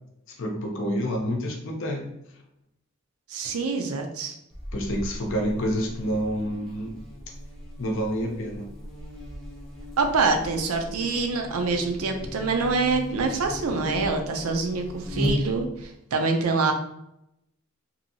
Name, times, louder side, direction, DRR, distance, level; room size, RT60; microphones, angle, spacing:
voice 1, 0.3-2.1 4.7-6.9 7.8-8.7, equal, 55° left, 1 dB, 0.6 m, -28 dB
voice 2, 3.3-4.4 10.0-16.7, right 4 dB, 75° right, 4 dB, 0.5 m, -25 dB
Buzz, 4.5-15.9, equal, ahead, 0.5 m, -36 dB
2.8 x 2.6 x 2.7 m, 0.81 s
head